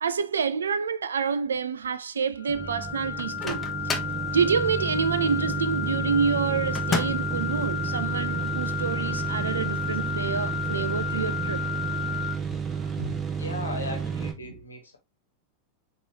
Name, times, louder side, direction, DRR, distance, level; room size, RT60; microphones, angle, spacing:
voice 1, 0.0-3.6 4.3-11.6, right 6 dB, 70° right, 0.3 m, -27 dB
sound 1, 2.4-12.3, left 10 dB, 50° left, 0.4 m, -33 dB
sound 2, 2.5-14.3, right 6 dB, 20° right, 0.8 m, -31 dB
Microwave oven, 3.2-4.2 6.7-7.4, left 4 dB, 20° left, 0.8 m, -31 dB
voice 2, 13.0-15.0, left 2 dB, 80° left, 1.3 m, -37 dB
5.3 x 2.9 x 2.7 m
figure-of-eight pair, 90°, 0 cm